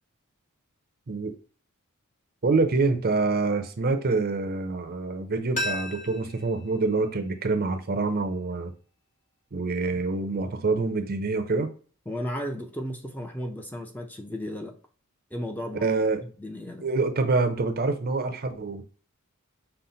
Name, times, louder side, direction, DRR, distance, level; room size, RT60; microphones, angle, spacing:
voice 1, 2.4-8.7 9.5-11.7 15.8-16.2 16.8-18.8, right 3 dB, 45° right, 0.6 m, -26 dB
sound 1, 5.5-8.3 8.6-8.7, left 2 dB, 35° left, 1.0 m, -36 dB
voice 2, 12.1-14.8 15.3-15.9 16.2-16.9, equal, 10° left, 0.5 m, -34 dB
5.6 x 2.1 x 3.9 m
head